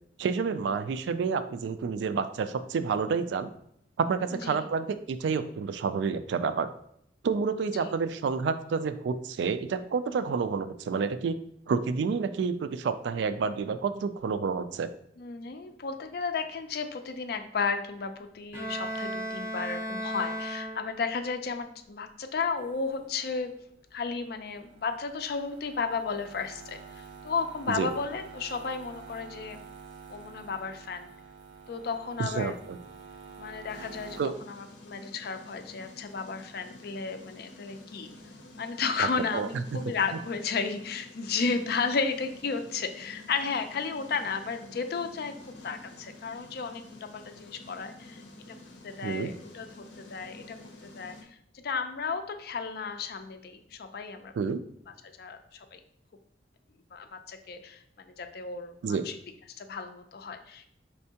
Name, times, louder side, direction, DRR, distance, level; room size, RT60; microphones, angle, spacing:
voice 1, 0.2-3.5 4.0-6.7 7.2-11.4 11.7-14.9 27.7-27.9 32.2-32.8 34.2-34.3 39.0-39.1 39.3-39.5 49.0-49.3 54.4-54.6 58.8-59.0, right 5 dB, 70° right, 11 dB, 0.3 m, -29 dB
voice 2, 15.2-23.5 23.9-29.6 30.1-31.1 31.7-32.6 33.4-38.1 38.6-45.3 45.6-48.2 48.5-48.6 48.8-50.6 50.8-51.4 51.6-54.3 55.2-55.8 56.9-59.2 59.6-60.7, left 5 dB, 55° left, 8 dB, 0.4 m, -33 dB
Bowed string instrument, 18.5-21.2, equal, 15° right, 0.6 m, -35 dB
sound 1, 22.6-34.2, right 5 dB, 90° right, 0.7 m, -49 dB
sound 2, 33.7-51.2, left 2 dB, 85° left, 0.7 m, -50 dB
4.4 x 3.3 x 2.8 m, 0.70 s
head